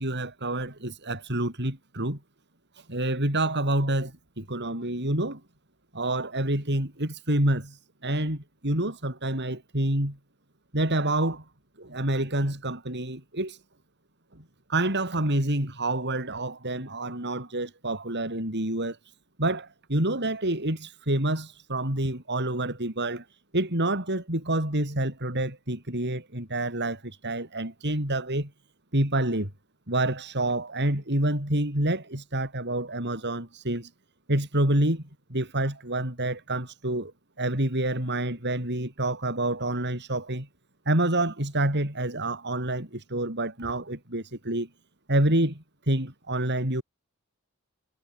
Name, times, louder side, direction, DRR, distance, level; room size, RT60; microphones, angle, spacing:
voice 1, 0.0-2.2 2.9-5.4 5.9-7.8 8.0-10.2 10.7-11.4 11.8-13.6 14.3-14.4 14.7-19.0 19.4-23.2 23.5-28.5 28.9-29.5 29.9-33.9 34.3-35.0 35.3-37.1 37.4-40.5 40.9-44.7 45.1-46.8, right 1 dB, 55° right, 7.7 m, -27 dB
head